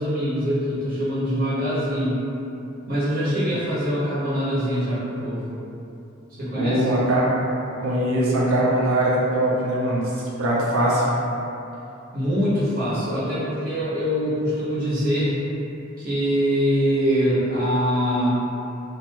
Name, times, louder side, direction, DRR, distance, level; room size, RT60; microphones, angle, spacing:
voice 1, 0.0-2.2 2.9-5.5 6.4-6.9 12.1-15.3 16.0-18.4, equal, 45° right, -11 dB, 0.9 m, -23 dB
voice 2, 6.5-7.3 7.8-11.1, right 1 dB, 80° right, -6 dB, 0.6 m, -21 dB
2.6 x 2.2 x 2.8 m, 2.8 s
head